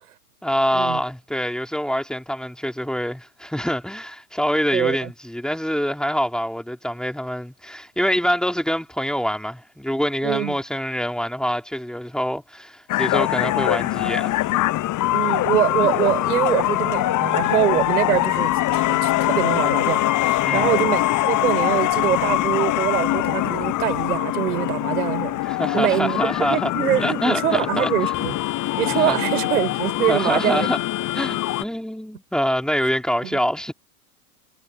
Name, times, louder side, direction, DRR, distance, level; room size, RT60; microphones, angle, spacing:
voice 1, 0.4-14.5 20.4-20.8 25.4-26.7 27.0-28.1 28.8-29.2 30.1-30.8 31.1-33.7, equal, ahead, 3.7 m, -25 dB
voice 2, 4.7-5.1 10.2-10.5 15.1-25.4 25.7-28.3 28.8-30.7 33.2-33.4, right 12 dB, 70° right, 4.2 m, -24 dB
sound 1, 12.9-31.6, left 16 dB, 40° left, 7.8 m, -23 dB
hypercardioid pair, 95°, 45 cm